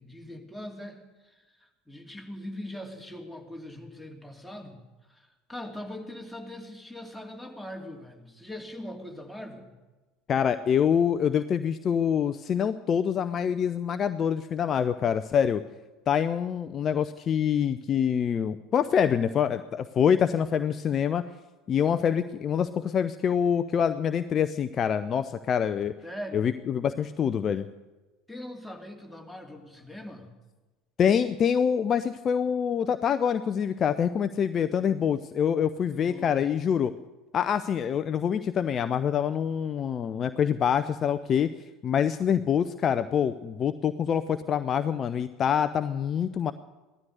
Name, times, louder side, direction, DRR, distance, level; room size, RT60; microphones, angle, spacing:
voice 1, 0.0-9.7 26.0-26.5 28.3-30.3 35.8-36.4, left 1 dB, ahead, 0 dB, 2.7 m, -41 dB
voice 2, 10.3-15.6 16.1-21.2 21.7-25.9 26.3-27.7 31.0-36.9 37.3-41.5 41.8-46.5, left 8 dB, 35° left, 11 dB, 0.6 m, -25 dB
16.5 x 13.0 x 6.6 m, 1.2 s
figure-of-eight pair, 70°, 0 cm